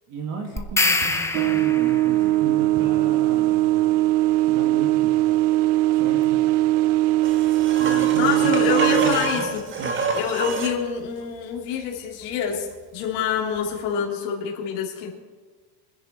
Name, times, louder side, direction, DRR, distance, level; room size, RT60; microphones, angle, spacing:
voice 1, 0.1-3.7 4.4-5.1 5.9-6.4 7.7-8.4 8.7-9.5 9.8-10.0, right 4 dB, 45° right, 2 dB, 2.0 m, -34 dB
sound 1, 0.6-2.1, left 2 dB, 5° left, 0.6 m, -24 dB
sound 2, 1.3-9.1, right 16 dB, 65° right, 0.9 m, -20 dB
sound 3, 7.2-10.8 13.7-13.8, right 4 dB, 25° right, 1.5 m, -27 dB
voice 2, 8.2-9.6 10.1-12.7 12.9-15.1, left 7 dB, 75° left, -2 dB, 2.9 m, -26 dB
25.0 x 10.5 x 4.4 m, 1.4 s
cardioid pair, 155°, 48 cm